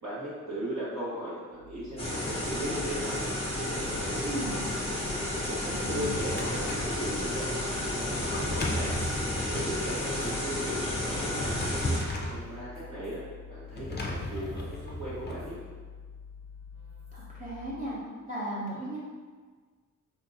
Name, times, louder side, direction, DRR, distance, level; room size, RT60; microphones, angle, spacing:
voice 1, 0.0-3.2 3.5-4.6 5.5-8.9 9.5-11.5 12.3-13.2 13.5-15.5, equal, 60° right, -10 dB, 1.3 m, -37 dB
sound 1, 1.5-18.1, left 6 dB, 75° right, 0.9 m, -47 dB
sound 2, 2.0-12.0, left 1 dB, 20° left, 0.8 m, -32 dB
voice 2, 4.2-4.6 5.8-6.1 17.1-18.0 18.3-19.0, right 1 dB, 25° right, -8 dB, 0.9 m, -36 dB
Drawer open or close, 5.6-7.0 8.1-9.8 11.1-12.4 13.7-15.4, left 1 dB, 35° left, 0.4 m, -35 dB
4.4 x 2.7 x 2.6 m, 1.5 s
wide cardioid pair, 180°, 32 cm